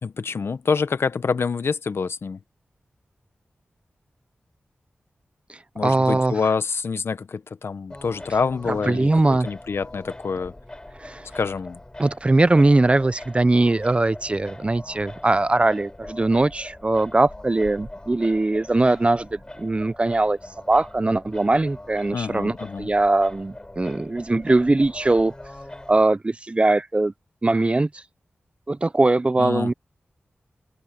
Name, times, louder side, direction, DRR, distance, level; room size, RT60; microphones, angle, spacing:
voice 1, 0.0-2.4 5.7-10.5 11.3-11.8 22.1-22.9 29.4-29.7, left 5 dB, 70° left, 1.0 m, -26 dB
voice 2, 5.8-6.3 8.9-9.5 11.0-11.2 12.0-20.4 20.7-25.3 25.9-27.1 27.4-27.9 28.7-29.7, right 2 dB, 25° right, 0.6 m, -20 dB
Singing, 7.9-26.0, left 1 dB, 20° left, 7.2 m, -42 dB
open air
wide cardioid pair, 90°, 4 cm